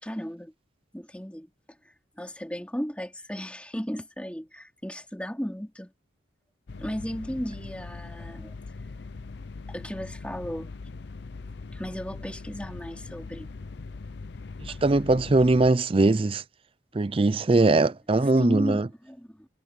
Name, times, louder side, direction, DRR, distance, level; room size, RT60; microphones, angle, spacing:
voice 1, 0.0-0.5 0.9-1.5 2.2-5.9 6.8-8.5 9.7-10.7 11.7-13.5 14.7-14.8 18.4-19.5, equal, 5° left, 3.3 m, -35 dB
sound 1, 6.7-15.7, left 3 dB, 55° left, 0.5 m, -41 dB
voice 2, 14.6-16.4 16.9-18.9, right 2 dB, 25° right, 0.4 m, -21 dB
head